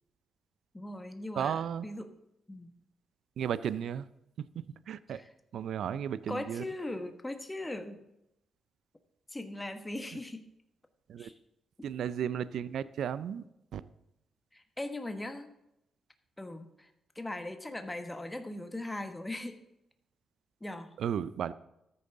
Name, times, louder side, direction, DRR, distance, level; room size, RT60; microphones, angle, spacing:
voice 1, 0.7-2.1 2.5-2.7 5.1-5.3 6.3-8.0 9.3-10.5 11.2-11.3 14.5-15.5 16.4-16.9 17.1-19.6 20.6-20.9, left 1 dB, 15° left, 7 dB, 1.3 m, -39 dB
voice 2, 1.3-1.8 3.4-4.1 4.5-5.2 5.5-6.6 11.1-11.3 11.8-13.5 13.7-13.8 21.0-21.5, right 8 dB, 70° right, 17 dB, 0.5 m, -34 dB
13.5 x 9.8 x 3.8 m, 0.84 s
hypercardioid pair, 45°, 0 cm